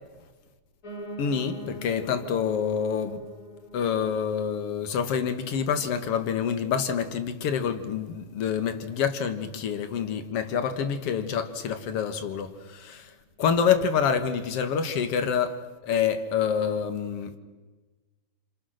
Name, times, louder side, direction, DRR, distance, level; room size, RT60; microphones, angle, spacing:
Piano, 0.8-9.9 10.3-11.5 11.8-11.9 12.1-12.2 12.4-12.5 13.1-13.2, equal, 30° left, 2.5 m, -46 dB
voice 1, 1.2-3.2 3.7-13.1 13.4-17.4, left 7 dB, 55° left, 1.9 m, -27 dB
28.5 x 26.5 x 6.5 m
omnidirectional pair, 4.2 m